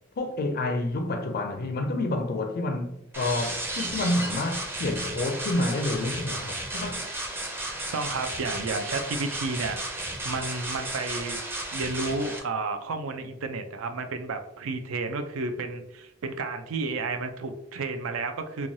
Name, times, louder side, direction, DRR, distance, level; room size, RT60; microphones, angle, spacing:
voice 1, 0.2-7.1, left 2 dB, 50° left, 0.4 m, -29 dB
sound 1, 3.1-12.4, right 1 dB, 10° right, 0.4 m, -34 dB
voice 2, 7.9-11.4 11.7-18.7, right 3 dB, 90° right, 0.4 m, -32 dB
3.1 x 2.2 x 2.6 m
head